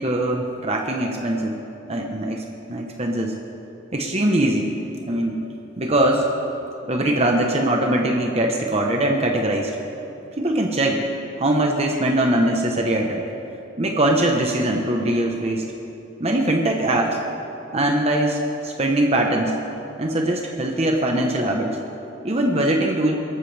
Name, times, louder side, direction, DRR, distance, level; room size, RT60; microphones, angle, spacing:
voice 1, 0.0-1.6 1.9-2.4 2.7-3.4 3.9-4.7 5.0-5.4 5.8-6.3 6.9-9.7 10.4-11.1 11.4-13.3 13.8-15.7 16.2-17.2 17.7-19.5 20.0-21.8 22.2-23.2, right 1 dB, 35° right, 1 dB, 1.0 m, -21 dB
23.0 x 14.0 x 3.4 m, 2.9 s
head